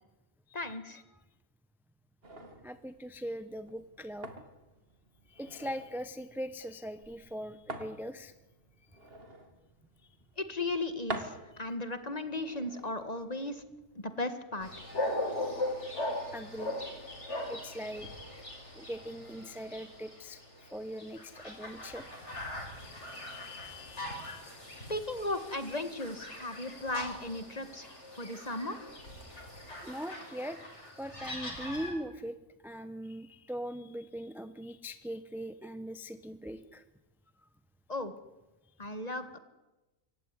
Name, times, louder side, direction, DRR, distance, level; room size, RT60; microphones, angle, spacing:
voice 1, 0.5-1.0 10.4-13.6 14.0-14.7 24.9-28.8 37.9-38.1 38.8-39.4, left 2 dB, 25° left, 10 dB, 1.8 m, -36 dB
sound 1, 2.2-14.1, right 2 dB, 40° right, 2.4 m, -48 dB
voice 2, 2.6-4.3 5.3-8.3 16.3-16.7 17.3-18.1 18.7-22.2 23.0-24.5 29.8-30.6 31.0-32.4 32.6-36.8, equal, ahead, 11 dB, 0.7 m, -41 dB
sound 2, 14.6-31.9, left 1 dB, 45° left, 5.9 m, -40 dB
26.0 x 15.5 x 9.8 m, 1.1 s
omnidirectional pair, 1.6 m